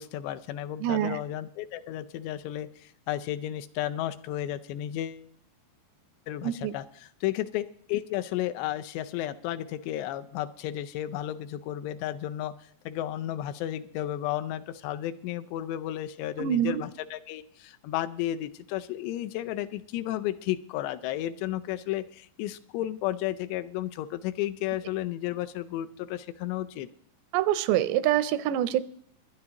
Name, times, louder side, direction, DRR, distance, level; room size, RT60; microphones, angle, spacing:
voice 1, 0.0-5.2 6.3-26.9, left 13 dB, 85° left, 11 dB, 2.7 m, -33 dB
voice 2, 0.8-1.2 6.4-6.7 16.4-16.8 27.3-28.8, right 12 dB, 85° right, 15 dB, 2.7 m, -25 dB
21.5 x 10.5 x 2.9 m, 0.62 s
omnidirectional pair, 4.9 m